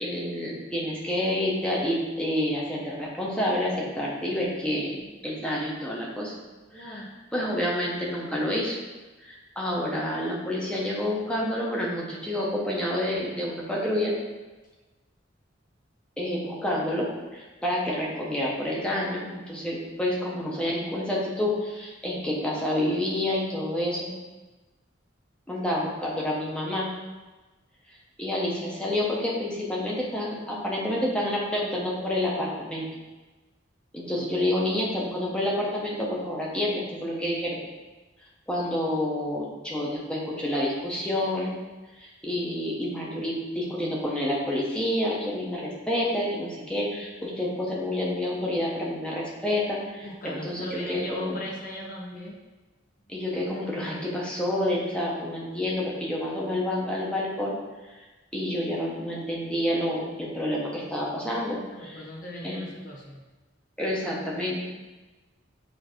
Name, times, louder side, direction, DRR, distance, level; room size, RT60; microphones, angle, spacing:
voice 1, 0.0-5.0 5.2-6.3 6.7-7.0 7.3-8.8 9.2-14.1 16.2-24.1 25.5-26.9 28.2-32.9 33.9-37.6 38.5-41.6 42.0-51.4 53.1-57.6 58.3-62.0 62.4-62.6 63.8-64.6, left 1 dB, 5° left, -5 dB, 1.2 m, -28 dB
voice 2, 6.7-7.1 50.0-52.4 53.3-54.0 61.7-63.2, equal, 45° left, -4 dB, 1.3 m, -38 dB
7.3 x 3.1 x 4.6 m, 1.2 s
head